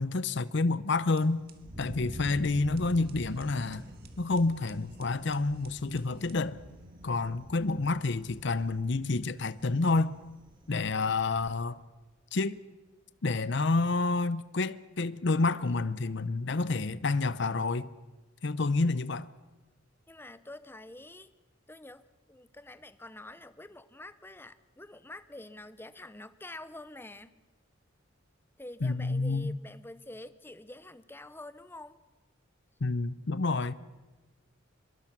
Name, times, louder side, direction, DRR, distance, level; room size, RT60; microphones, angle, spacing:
voice 1, 0.0-1.4 1.8-3.9 4.2-6.6 7.0-10.1 10.7-11.8 12.3-12.6 13.2-17.9 18.4-19.3 28.8-29.5 32.8-33.7, left 3 dB, 60° left, 0.7 m, -29 dB
Thunder, 1.0-11.6, equal, 25° right, 2.0 m, -47 dB
sound 1, 1.0-7.3, right 3 dB, 50° right, 1.8 m, -57 dB
voice 2, 20.1-21.3 21.7-27.3 28.6-32.0, left 1 dB, 10° left, 0.7 m, -47 dB
25.5 x 22.0 x 6.0 m
head